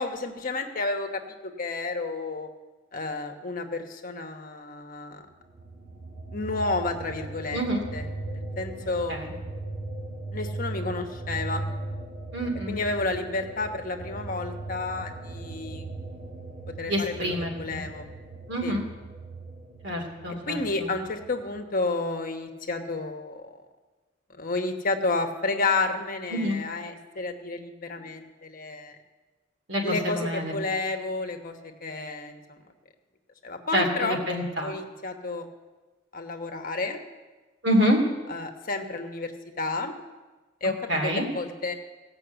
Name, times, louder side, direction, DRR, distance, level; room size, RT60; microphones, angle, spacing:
voice 1, 0.0-2.5 2.9-5.3 6.3-7.6 7.9-8.0 8.3-9.1 10.3-11.6 12.7-15.8 16.8-18.1 18.6-18.8 20.5-23.5 24.4-28.9 29.8-31.6 31.8-32.6 33.4-34.2 34.6-35.5 36.1-37.0 38.3-39.9 40.6-41.7, left 3 dB, 45° left, 5 dB, 1.1 m, -31 dB
sound 1, 5.5-21.6, right 2 dB, 45° right, 1.3 m, -38 dB
voice 2, 7.5-7.8 8.8-9.3 12.3-12.7 16.9-17.8 18.5-18.8 19.8-20.9 26.3-26.6 29.7-30.5 33.7-34.8 37.6-38.0 40.9-41.3, equal, 65° right, 1 dB, 2.6 m, -27 dB
17.5 x 5.9 x 8.0 m, 1.2 s
head